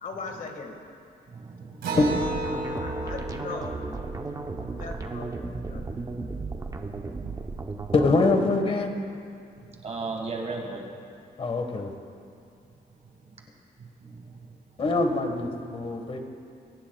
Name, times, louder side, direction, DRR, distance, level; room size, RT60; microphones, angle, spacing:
voice 1, 0.0-0.8 2.5-3.8 4.8-5.8 7.9-8.2 11.6-11.8, left 4 dB, 50° left, 3 dB, 1.8 m, -39 dB
voice 2, 1.3-2.0 4.4-4.9 6.6-7.6 9.6-11.0 13.8-14.5, right 3 dB, 40° right, 2 dB, 1.7 m, -38 dB
Acoustic guitar, 1.8-6.7, right 2 dB, 80° right, 3.3 m, -35 dB
sound 1, 2.0-8.1, right 3 dB, 20° right, 0.8 m, -35 dB
voice 3, 7.9-8.9 11.4-11.9 14.8-16.2, left 3 dB, 35° left, 5 dB, 1.4 m, -24 dB
23.0 x 18.5 x 2.3 m, 2.4 s
wide cardioid pair, 165°, 17 cm